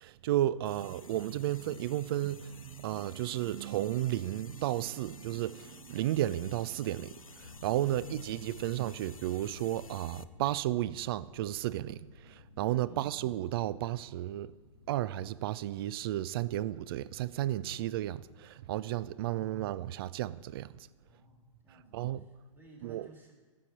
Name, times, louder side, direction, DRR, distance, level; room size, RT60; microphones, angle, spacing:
voice 1, 0.0-14.5 14.9-20.7 21.7-22.3 22.8-23.1, right 13 dB, 45° right, 0.4 m, -33 dB
sound 1, 0.6-10.2, left 5 dB, 90° left, 0.5 m, -54 dB
sound 2, 7.4-21.9 22.2-22.3, left 4 dB, 60° left, 1.2 m, -57 dB
voice 2, 21.0-22.3 22.5-23.3, right 2 dB, 10° right, 2.6 m, -58 dB
14.5 x 7.3 x 4.3 m
figure-of-eight pair, 115°, 17 cm